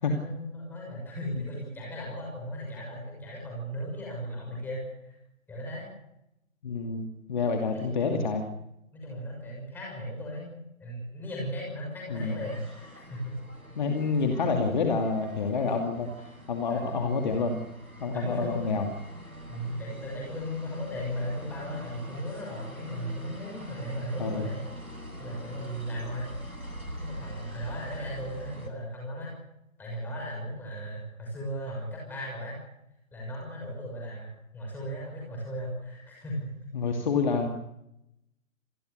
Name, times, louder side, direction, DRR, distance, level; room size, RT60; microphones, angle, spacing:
voice 1, 0.0-5.2 5.5-5.9 7.7-8.3 8.9-13.4 16.7-17.0 18.1-18.8 19.5-24.7 25.2-26.3 27.0-29.4 29.8-32.6 33.1-36.5, equal, 5° left, -2 dB, 6.2 m, -36 dB
voice 2, 6.6-8.5 12.1-12.4 13.8-17.6 18.0-18.9 24.2-24.4 36.7-37.5, left 4 dB, 35° left, 4 dB, 2.6 m, -28 dB
sound 1, 12.1-28.7, equal, 90° right, 7.6 m, -44 dB
27.0 x 20.0 x 6.7 m, 0.84 s
figure-of-eight pair, 145°, 42 cm